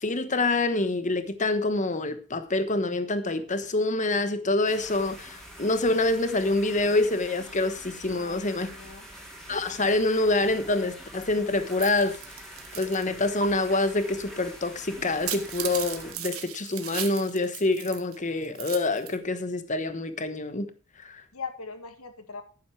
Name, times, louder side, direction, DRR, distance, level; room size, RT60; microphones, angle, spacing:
voice 1, 0.0-8.7 9.5-12.2 12.8-20.7 21.0-21.2, left 2 dB, 35° left, 1.2 m, -26 dB
sound 1, 4.6-16.1, equal, ahead, 3.1 m, -45 dB
voice 2, 8.1-9.1 21.3-22.4, left 5 dB, 85° left, 1.9 m, -40 dB
sound 2, 11.7-13.0 13.4-13.5 15.1-18.2 18.4-19.2, right 9 dB, 85° right, 1.8 m, -36 dB
11.0 x 9.7 x 4.5 m
head